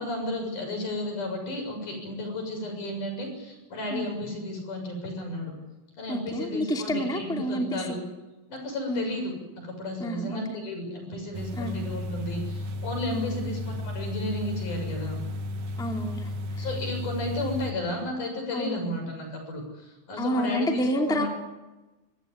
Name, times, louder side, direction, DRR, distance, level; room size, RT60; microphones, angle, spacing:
voice 1, 0.0-5.6 6.0-8.0 8.5-9.3 9.6-15.2 16.6-21.3, left 1 dB, 80° left, 3 dB, 8.5 m, -33 dB
voice 2, 6.1-7.9 8.9-9.0 10.0-10.4 11.6-11.8 13.1-13.5 15.8-16.3 16.6-16.7 18.5-18.9 20.2-21.3, equal, ahead, 2 dB, 2.3 m, -29 dB
sound 1, 11.3-17.7, left 2 dB, 55° right, 2.0 m, -34 dB
25.0 x 16.0 x 9.9 m, 1.1 s
omnidirectional pair, 3.6 m